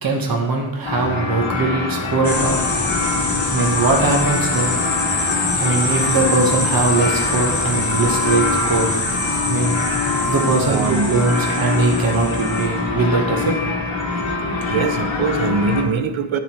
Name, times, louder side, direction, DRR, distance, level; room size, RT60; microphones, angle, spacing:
voice 1, 0.0-2.6 3.5-4.8 5.5-9.0 9.5-9.8 10.3-13.5, right 3 dB, 45° right, 1 dB, 1.2 m, -20 dB
sound 1, 0.8-15.8, left 3 dB, 70° left, 1.3 m, -24 dB
sound 2, 2.2-12.7, left 2 dB, 40° left, 1.3 m, -25 dB
voice 2, 10.6-11.1 14.7-16.4, right 5 dB, 75° right, 9 dB, 0.7 m, -22 dB
10.0 x 3.9 x 4.3 m, 1.0 s
wide cardioid pair, 80°, 48 cm